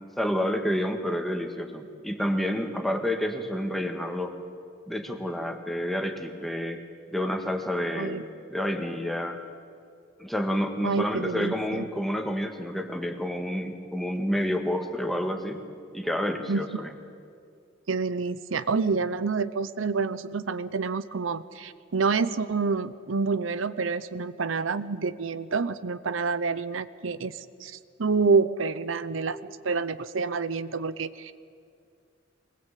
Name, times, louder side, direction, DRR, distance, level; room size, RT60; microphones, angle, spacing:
voice 1, 0.2-4.3 4.9-6.8 7.1-9.4 10.2-15.6 15.9-16.9, equal, ahead, 5 dB, 1.7 m, -29 dB
voice 2, 10.8-11.8 16.5-16.6 17.9-31.3, right 4 dB, 90° right, 14 dB, 0.8 m, -28 dB
23.0 x 20.0 x 8.4 m, 2.3 s
head